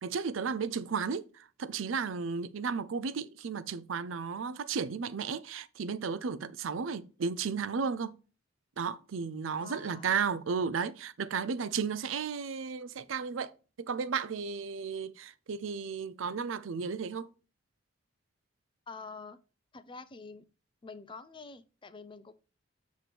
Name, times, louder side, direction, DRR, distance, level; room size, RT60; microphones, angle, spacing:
voice 1, 0.0-8.2 8.8-13.5 13.8-17.3, right 5 dB, 85° right, 0.5 m, -34 dB
voice 2, 9.6-10.2 18.9-19.4 19.7-20.5 20.8-22.3, left 4 dB, 25° left, 0.5 m, -47 dB
6.9 x 3.1 x 5.8 m
head